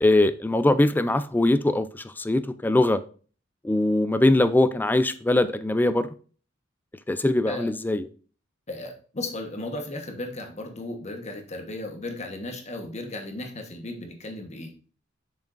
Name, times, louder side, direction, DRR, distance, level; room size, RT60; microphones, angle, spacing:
voice 1, 0.0-3.0 3.6-6.1 7.1-8.1, left 1 dB, 10° left, 12 dB, 0.4 m, -22 dB
voice 2, 8.7-14.7, left 2 dB, 35° left, 4 dB, 1.2 m, -35 dB
7.1 x 6.1 x 2.6 m, 0.40 s
head